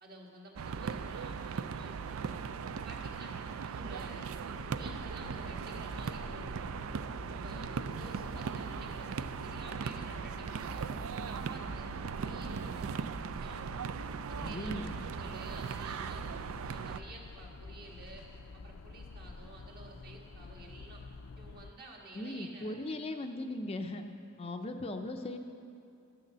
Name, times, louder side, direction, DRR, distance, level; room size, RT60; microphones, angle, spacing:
voice 1, 0.0-2.4 2.8-4.3 4.7-6.8 7.3-10.9 11.3-13.8 14.3-16.2 16.6-18.2 18.5-21.0 21.4-23.3, right 2 dB, 45° right, -2 dB, 1.8 m, -51 dB
sound 1, 0.6-17.0, right 6 dB, 70° right, 0.4 m, -38 dB
sound 2, 4.5-21.7, left 3 dB, 85° left, 0.5 m, -49 dB
voice 2, 14.4-14.9 22.1-24.1 24.4-25.4, left 1 dB, 30° left, 5 dB, 0.5 m, -38 dB
12.5 x 6.6 x 7.4 m, 2.5 s
head